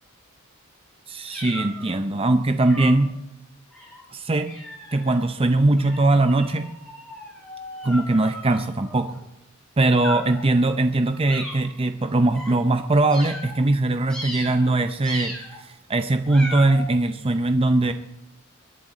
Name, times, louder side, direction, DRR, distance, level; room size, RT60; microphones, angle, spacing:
voice 1, 1.1-3.2 4.1-4.6 4.9-6.7 7.8-9.2 9.8-17.9, right 2 dB, 25° right, 8 dB, 0.6 m, -21 dB
sound 1, 1.3-2.0 2.6-3.1 3.7-4.0 4.4-5.2 5.8-9.2 9.9-10.5 11.3-11.7 12.3-12.5 13.1-13.6 14.1-14.7 15.0-15.6 16.3-16.9, left 1 dB, 5° left, 5.3 m, -37 dB
22.5 x 11.5 x 3.9 m, 0.83 s
head